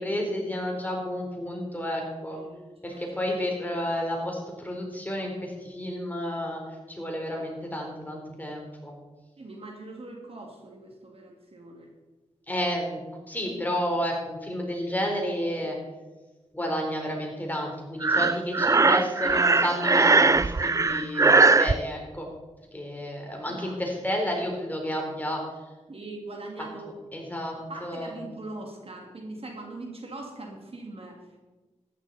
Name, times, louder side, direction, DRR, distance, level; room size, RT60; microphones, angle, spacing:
voice 1, 0.0-2.4 2.8-6.6 6.9-9.0 12.5-15.8 16.5-22.3 22.7-25.4 27.1-27.5 27.8-28.2, equal, 15° left, 0 dB, 4.2 m, -31 dB
voice 2, 2.3-3.1 9.4-11.9 23.4-23.8 25.9-27.0 27.5-31.4, right 2 dB, 50° right, 1 dB, 2.5 m, -41 dB
Breathing, 18.0-21.7, right 3 dB, 25° right, 0.4 m, -20 dB
14.0 x 11.0 x 4.3 m, 1.2 s
cardioid pair, 55°, 12 cm